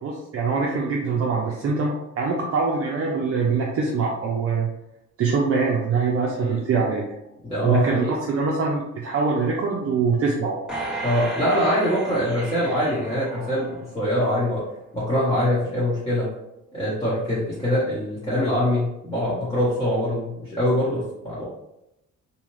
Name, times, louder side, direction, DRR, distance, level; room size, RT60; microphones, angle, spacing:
voice 1, 0.0-4.7 5.2-7.0 7.6-10.6, right 4 dB, 50° right, -2 dB, 0.5 m, -23 dB
voice 2, 7.4-8.1 11.0-14.6 14.9-16.3 16.7-21.4, left 1 dB, 20° left, -10 dB, 1.1 m, -23 dB
sound 1, 10.7-14.1 14.6-14.7, right 2 dB, 5° right, 1.1 m, -34 dB
2.7 x 2.4 x 3.1 m, 0.86 s
cardioid pair, 90°, 30 cm